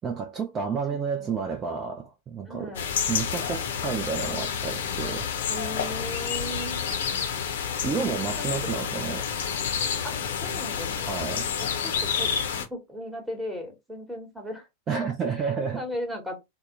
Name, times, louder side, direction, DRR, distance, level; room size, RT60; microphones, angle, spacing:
voice 1, 0.0-2.7 3.1-5.3 7.8-9.3 11.1-11.5 14.9-15.8, right 6 dB, 25° right, 0.5 m, -30 dB
voice 2, 0.9-1.4 2.4-2.9 5.5-6.8 7.9-8.5 10.0-11.3 11.6-12.3 12.7-14.7 15.3-16.4, equal, 5° right, 1.1 m, -37 dB
sound 1, 2.7-12.6, left 7 dB, 60° left, 0.6 m, -29 dB
3.3 x 2.0 x 2.9 m
figure-of-eight pair, 90°, 0 cm